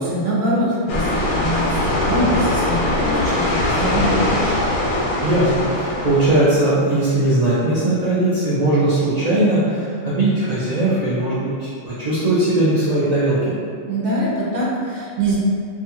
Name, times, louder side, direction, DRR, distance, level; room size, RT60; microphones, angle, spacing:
voice 1, 0.0-4.6 13.8-15.4, right 1 dB, 90° right, -5 dB, 1.0 m, -23 dB
sound 1, 0.9-6.4, left 1 dB, 90° left, 1.0 m, -21 dB
voice 2, 5.2-13.5, right 1 dB, 75° right, -11 dB, 0.3 m, -19 dB
2.5 x 2.3 x 2.8 m, 2.2 s
omnidirectional pair, 1.4 m